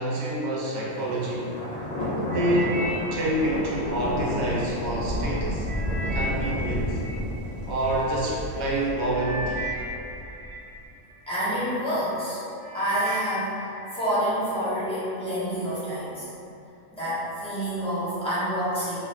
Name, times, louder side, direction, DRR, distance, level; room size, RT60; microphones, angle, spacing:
voice 1, 0.0-1.5 2.2-5.7 6.1-7.0 7.7-9.7, right 1 dB, 85° right, -4 dB, 1.0 m, -27 dB
Thunder, 0.9-10.7, left 1 dB, 85° left, 0.3 m, -31 dB
sound 1, 2.3-4.6 5.1-8.0 8.7-8.8 9.1-11.5 12.0-12.3 12.6-14.1 14.5-14.9 15.5-15.6, right 1 dB, 55° right, 0.7 m, -37 dB
voice 2, 11.3-12.4 12.7-16.3 16.9-19.0, equal, 5° left, -12 dB, 0.6 m, -28 dB
2.5 x 2.4 x 3.1 m, 2.8 s
omnidirectional pair, 1.4 m